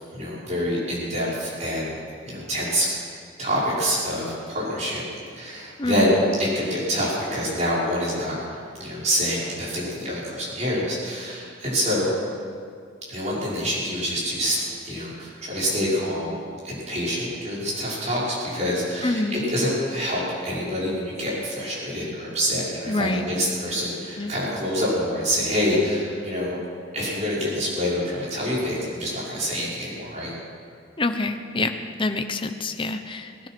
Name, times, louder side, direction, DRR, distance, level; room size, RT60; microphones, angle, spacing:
voice 1, 0.1-1.9 2.2-2.9 3.4-5.0 5.4-8.4 8.8-12.1 13.1-16.4 16.6-26.6 26.9-30.3, equal, 40° right, -7 dB, 5.7 m, -26 dB
voice 2, 5.8-6.2 19.0-19.5 22.9-23.3 24.2-24.3 31.0-31.7 32.0-33.5, left 2 dB, 25° left, 7 dB, 0.9 m, -26 dB
19.0 x 12.5 x 6.1 m, 2.2 s
head